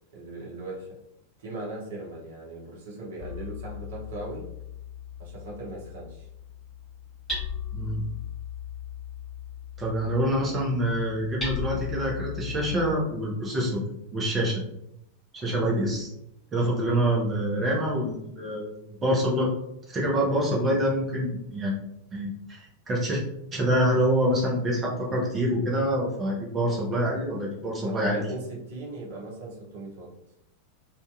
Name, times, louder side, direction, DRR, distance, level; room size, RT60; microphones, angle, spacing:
voice 1, 0.1-1.0 1.4-4.5 5.2-6.3 16.7-17.0 27.8-30.1, right 2 dB, 60° right, -3 dB, 0.8 m, -39 dB
Hammer, 3.2-13.0, left 6 dB, 15° left, 1.1 m, -37 dB
voice 2, 9.8-13.8 14.1-14.6 15.3-16.1 16.5-19.5 19.9-21.7 22.1-23.2 23.5-28.2, equal, 25° right, -3 dB, 0.8 m, -26 dB
2.6 x 2.4 x 2.4 m, 0.81 s
figure-of-eight pair, 90°, 0 cm